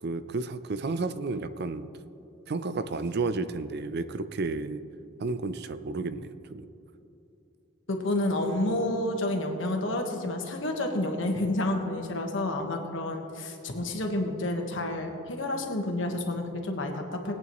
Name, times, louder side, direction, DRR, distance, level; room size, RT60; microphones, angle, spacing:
voice 1, 0.0-1.9 2.5-4.8 5.2-6.7, right 3 dB, 55° right, 12 dB, 0.5 m, -32 dB
voice 2, 7.9-17.4, left 1 dB, 70° left, 2 dB, 1.4 m, -30 dB
20.0 x 8.8 x 3.1 m, 2.9 s
head